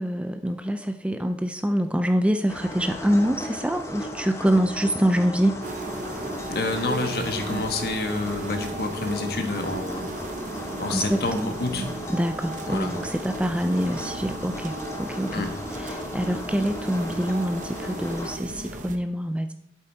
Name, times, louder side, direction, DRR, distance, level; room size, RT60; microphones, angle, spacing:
voice 1, 0.0-5.6 10.9-11.5 12.1-14.7 15.0-15.4 15.8-19.5, equal, 5° right, 8 dB, 0.4 m, -25 dB
sound 1, 2.5-18.4, left 1 dB, 15° left, 1.1 m, -36 dB
sound 2, 5.6-19.0, right 2 dB, 45° right, 1.0 m, -37 dB
voice 2, 6.5-10.1 10.8-11.8 12.7-12.9 15.3-15.5, left 2 dB, 55° left, 6 dB, 1.5 m, -28 dB
11.0 x 8.1 x 4.4 m, 0.80 s
head